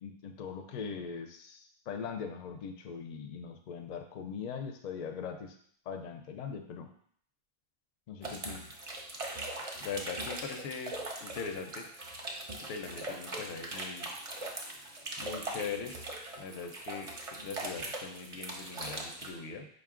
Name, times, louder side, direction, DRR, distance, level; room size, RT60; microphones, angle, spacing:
voice 1, 0.0-5.6 5.9-6.9 8.1-8.6, left 6 dB, 55° left, 5 dB, 0.5 m, -41 dB
sound 1, 8.2-19.3, right 2 dB, 40° right, 0.6 m, -41 dB
voice 2, 9.8-11.8 12.6-14.1 15.2-16.0 16.4-17.1 17.4-19.7, left 5 dB, 90° left, 4 dB, 0.9 m, -41 dB
5.2 x 2.3 x 3.6 m, 0.62 s
omnidirectional pair, 1.0 m